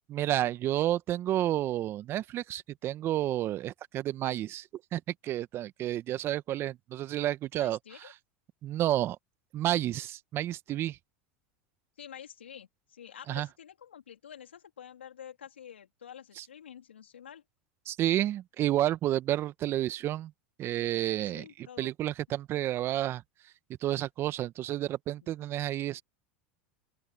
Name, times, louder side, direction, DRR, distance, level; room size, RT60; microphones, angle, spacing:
voice 1, 0.1-8.1 8.6-9.2 9.5-11.0 13.3-13.5 16.4-16.5 17.9-20.3 20.6-23.2 23.8-26.0, right 13 dB, 40° right, 1.3 m, -30 dB
voice 2, 7.6-8.1 12.0-17.4 21.2-21.9, left 9 dB, 85° left, 3.5 m, -49 dB
open air
hypercardioid pair, 90°, 6 cm